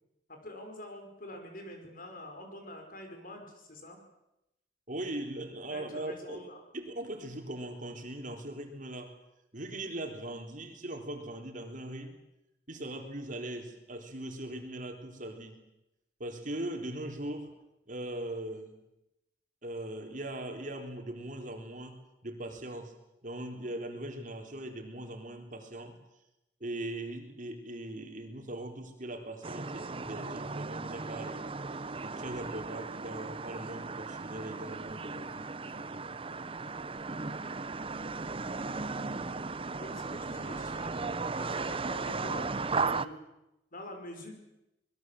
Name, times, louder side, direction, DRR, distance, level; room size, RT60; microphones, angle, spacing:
voice 1, 0.3-4.0 5.7-6.6 39.8-43.2 43.7-44.3, left 1 dB, 50° left, 4 dB, 5.5 m, -46 dB
voice 2, 4.9-6.4 6.7-9.2 9.5-12.2 12.7-15.6 16.2-17.5 17.9-18.8 19.6-22.9 23.2-26.0 26.6-36.1, right 1 dB, 50° right, 4 dB, 3.7 m, -40 dB
sound 1, 29.4-43.1, right 4 dB, 30° right, 0.8 m, -36 dB
25.0 x 21.5 x 7.7 m, 0.90 s
head